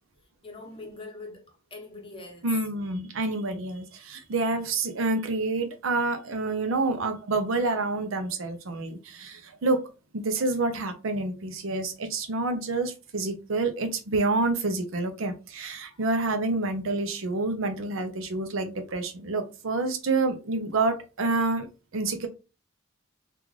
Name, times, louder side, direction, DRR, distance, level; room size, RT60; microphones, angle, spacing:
voice 1, 0.4-2.5 15.9-16.1, left 2 dB, 25° left, 0.9 m, -43 dB
voice 2, 2.4-9.8 10.1-21.7 21.9-22.3, right 3 dB, 80° right, 0.6 m, -28 dB
3.6 x 2.5 x 3.1 m
head